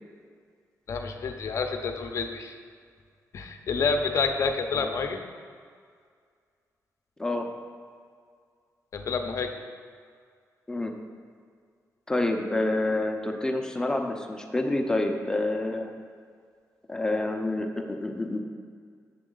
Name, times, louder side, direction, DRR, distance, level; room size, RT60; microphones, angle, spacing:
voice 1, 0.9-2.6 3.3-5.2 8.9-9.6, left 5 dB, 55° left, 5 dB, 0.7 m, -28 dB
voice 2, 12.1-15.9 16.9-18.4, left 2 dB, 10° left, 3 dB, 0.6 m, -28 dB
7.4 x 7.1 x 3.8 m, 2.1 s
wide cardioid pair, 130°, 6 cm